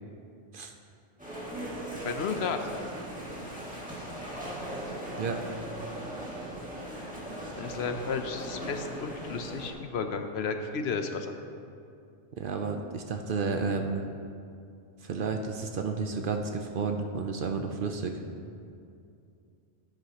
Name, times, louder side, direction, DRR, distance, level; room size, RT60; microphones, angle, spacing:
sound 1, 1.2-9.7, right 1 dB, 5° right, 1.9 m, -39 dB
voice 1, 2.0-2.7 6.9-7.1 7.5-11.3, left 5 dB, 70° left, 6 dB, 0.9 m, -33 dB
voice 2, 12.3-14.0 15.0-18.2, right 4 dB, 55° right, 5 dB, 0.7 m, -31 dB
11.0 x 10.0 x 2.9 m, 2.5 s
omnidirectional pair, 1.2 m